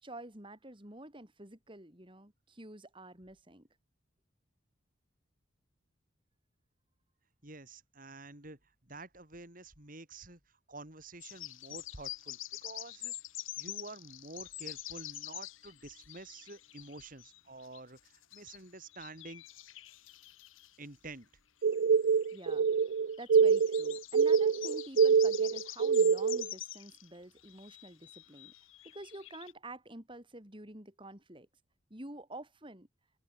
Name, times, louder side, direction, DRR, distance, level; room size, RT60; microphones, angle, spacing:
voice 1, 0.0-3.7 22.3-22.7 23.2-28.5 28.9-31.5 31.9-32.9, right 1 dB, 25° right, 3.8 m, -48 dB
voice 2, 7.4-10.4 10.7-13.1 13.6-19.4 20.8-21.3, right 2 dB, 45° right, 4.3 m, -49 dB
sound 1, 11.2-18.6 18.9-20.8 21.7-27.1 27.4-29.5, left 14 dB, 90° left, 1.6 m, -46 dB
sound 2, 21.6-26.5, right 6 dB, 70° right, 0.4 m, -25 dB
open air
head